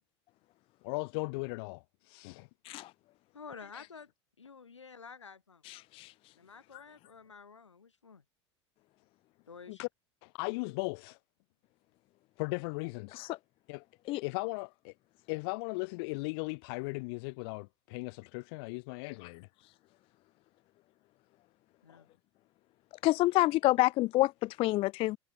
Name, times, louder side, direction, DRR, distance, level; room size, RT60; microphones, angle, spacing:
voice 1, 0.8-2.5 9.7-9.9 10.2-11.2 12.4-13.2 13.7-13.8 14.2-14.9 15.3-19.5 21.9-22.0, left 29 dB, 55° left, 1.8 m, -37 dB
voice 2, 3.3-4.1 4.4-5.6 6.4-8.2 9.5-9.8 21.8-22.1, left 5 dB, 80° left, 7.0 m, -50 dB
voice 3, 5.6-6.1 6.7-6.8 13.1-13.4 14.1-14.2 19.2-19.3 23.0-25.2, left 18 dB, 40° left, 0.4 m, -28 dB
figure-of-eight pair, 75°, 15 cm